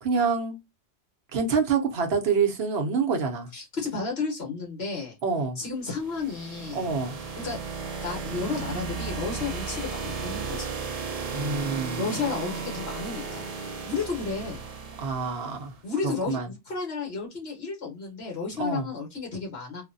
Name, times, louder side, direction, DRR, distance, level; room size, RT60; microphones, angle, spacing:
voice 1, 0.0-0.6 1.3-3.5 5.2-5.6 6.7-7.2 11.3-12.1 15.0-15.7 16.0-16.5 18.6-18.9, right 5 dB, 65° right, 0.9 m, -26 dB
voice 2, 3.5-5.1 5.6-6.9 7.4-7.6 8.0-10.7 12.0-13.4 13.8-14.6 15.8-19.8, left 4 dB, 65° left, 1.6 m, -32 dB
sound 1, 5.8-15.7, right 5 dB, 50° right, 0.5 m, -35 dB
3.2 x 2.2 x 2.5 m
omnidirectional pair, 1.2 m